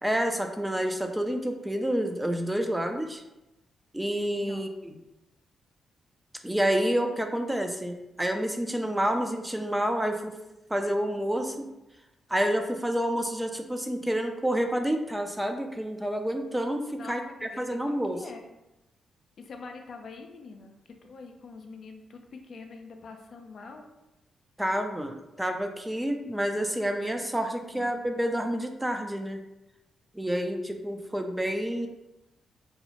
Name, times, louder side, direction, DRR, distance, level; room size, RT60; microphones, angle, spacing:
voice 1, 0.0-3.2 3.9-5.0 6.4-10.3 10.7-11.7 12.3-17.2 17.6-18.2 24.6-29.4 30.1-31.9, equal, 10° right, 5 dB, 0.3 m, -29 dB
voice 2, 17.0-18.5 19.4-23.9 27.7-27.8, left 4 dB, 65° left, 4 dB, 0.3 m, -45 dB
2.7 x 2.0 x 2.8 m, 0.94 s
supercardioid pair, 55°, 0 cm